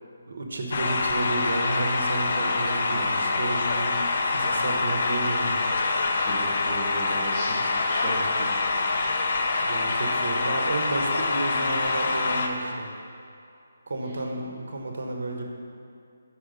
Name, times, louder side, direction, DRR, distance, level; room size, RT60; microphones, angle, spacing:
voice 1, 0.3-5.6 9.6-12.9 13.9-15.5, right 2 dB, 60° right, 2 dB, 1.0 m, -31 dB
sound 1, 0.7-12.5, left 3 dB, 45° left, 0.5 m, -25 dB
voice 2, 2.9-3.2 6.2-8.5, right 1 dB, 20° right, -10 dB, 1.1 m, -35 dB
5.6 x 5.1 x 5.1 m, 2.5 s
hypercardioid pair, 170°, 0 cm